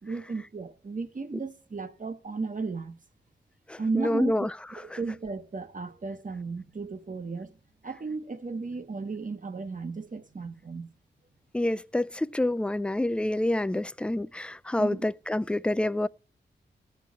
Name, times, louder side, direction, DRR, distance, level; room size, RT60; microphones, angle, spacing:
voice 1, 0.0-3.0 3.8-4.5 4.7-7.6 7.8-10.9 14.8-15.0, right 4 dB, 45° right, 1.1 m, -34 dB
voice 2, 3.7-4.5 11.5-16.1, left 1 dB, 5° left, 0.4 m, -27 dB
13.5 x 4.6 x 7.3 m
cardioid pair, 50°, 19 cm